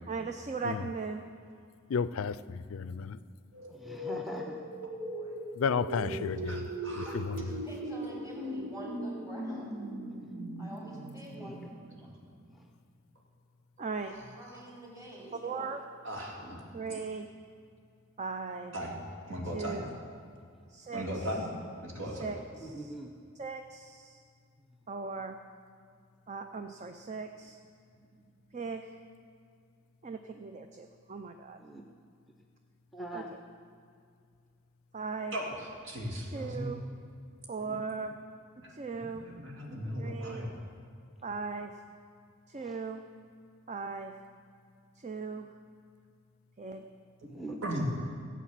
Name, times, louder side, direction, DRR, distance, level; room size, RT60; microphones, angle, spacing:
voice 1, 0.1-1.2 13.8-14.1 15.4-15.9 16.7-17.3 18.2-18.8 19.5-19.9 20.7-21.4 22.1-22.9 23.4-24.2 24.9-25.4 26.3-27.6 28.5-29.0 30.0-31.6 33.1-33.4 34.9-35.4 36.3-36.8 37.5-38.2 38.7-39.3 40.0-40.5 41.2-41.7 42.5-43.0 43.7-44.1 45.0-45.5 46.6-46.8, right 4 dB, 35° right, 6 dB, 0.5 m, -38 dB
voice 2, 1.9-3.2 5.6-6.7 7.0-7.4, left 6 dB, 85° left, 16 dB, 0.4 m, -32 dB
sound 1, 3.5-12.5, right 1 dB, 90° right, 1.8 m, -39 dB
voice 3, 3.7-4.6 9.5-9.7 11.3-11.6 16.4-16.5 22.6-23.1 31.6-31.8 32.9-33.3 42.6-42.8 47.3-47.6, right 1 dB, ahead, 1 dB, 0.7 m, -43 dB
voice 4, 5.9-7.1 14.5-14.6 16.0-16.6 18.7-18.9 19.3-19.8 20.9-21.5 21.8-22.3 35.3-35.4 35.8-36.7 38.6-40.5 47.6-47.9, equal, 65° right, -1 dB, 2.7 m, -37 dB
voice 5, 6.9-9.8 10.6-11.6 12.0-12.2 14.4-15.7, equal, 15° right, -4 dB, 3.6 m, -47 dB
15.5 x 8.3 x 7.5 m, 2.3 s
head